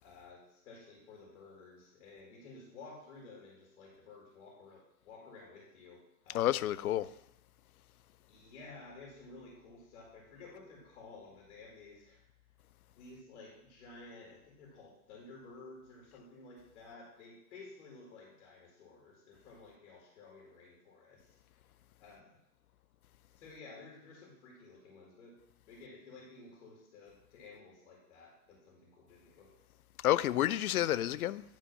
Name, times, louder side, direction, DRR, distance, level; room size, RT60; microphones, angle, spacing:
voice 1, 0.0-6.6 8.3-12.2 12.9-21.6 22.0-22.4 23.3-29.5, left 3 dB, 60° left, 2.3 m, -53 dB
voice 2, 6.3-7.1 30.0-31.4, left 13 dB, 75° left, 0.5 m, -29 dB
10.5 x 3.4 x 5.4 m
hypercardioid pair, 115°, 43 cm